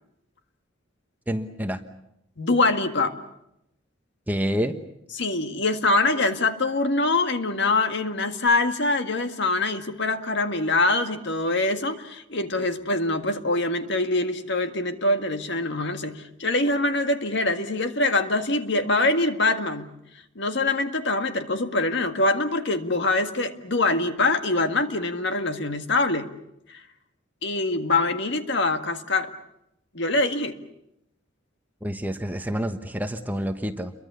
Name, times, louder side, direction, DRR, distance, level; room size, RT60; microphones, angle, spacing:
voice 1, 1.3-1.8 4.3-4.8 31.8-33.9, equal, 10° right, 7 dB, 1.2 m, -28 dB
voice 2, 2.4-3.2 5.1-19.9 20.4-26.3 26.7-26.8 27.4-29.3 29.9-30.6, left 2 dB, 60° left, 7 dB, 1.9 m, -24 dB
29.0 x 23.5 x 7.0 m, 0.83 s
head